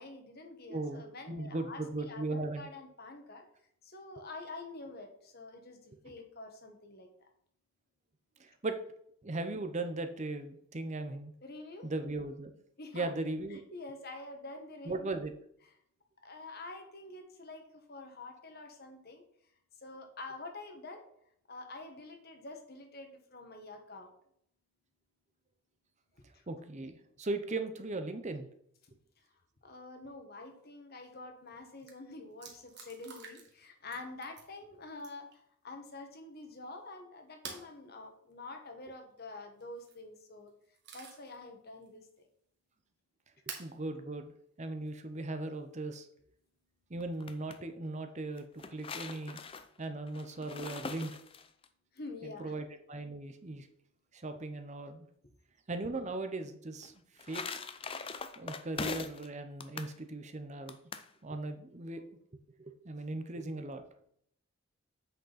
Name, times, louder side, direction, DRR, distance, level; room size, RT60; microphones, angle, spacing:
voice 1, 0.0-3.4 3.8-7.1 11.4-11.9 12.8-13.1 13.5-15.2 16.2-19.2 19.8-21.0 21.5-24.1 26.3-26.4 29.6-35.3 35.6-40.5 40.9-42.3 51.9-52.5, left 2 dB, 45° left, 5 dB, 1.4 m, -47 dB
voice 2, 0.7-2.7 5.9-6.0 8.4-8.8 9.2-11.3 11.8-12.5 12.9-13.6 14.8-15.3 26.5-28.5 43.6-44.3 44.6-46.1 46.9-49.4 49.8-51.1 52.2-53.7 54.1-55.1 55.7-57.4 58.4-60.8 61.2-62.0 62.6-63.8, right 2 dB, 35° right, 8 dB, 0.7 m, -38 dB
sound 1, 31.5-31.6 31.8-31.9 32.4-33.6 33.9-34.5 35.0-35.3 37.4-37.7 39.6-40.0 40.5-41.4 41.8-41.9 43.5-43.7 44.9-45.0 47.0-47.5, right 6 dB, 50° right, 1.6 m, -48 dB
sound 2, 47.0-47.6 48.4-51.7 56.8-59.3 59.6-59.9 60.7-61.1, left 4 dB, 25° left, 0.5 m, -42 dB
8.1 x 6.4 x 4.1 m, 0.70 s
head